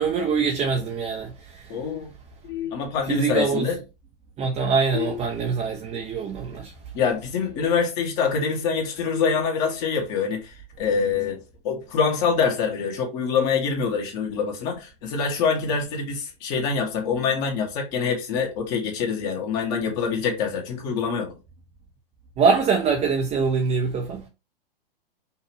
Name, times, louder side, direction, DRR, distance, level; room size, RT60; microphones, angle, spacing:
voice 1, 0.0-1.7 3.1-3.7 4.4-6.7 22.4-24.2, right 5 dB, 20° right, 0.8 m, -24 dB
voice 2, 1.7-2.1 2.4-3.8 4.9-5.1 6.9-11.4 11.6-21.3, left 5 dB, 40° left, 1.7 m, -25 dB
5.5 x 2.9 x 3.0 m
hypercardioid pair, 115°, 29 cm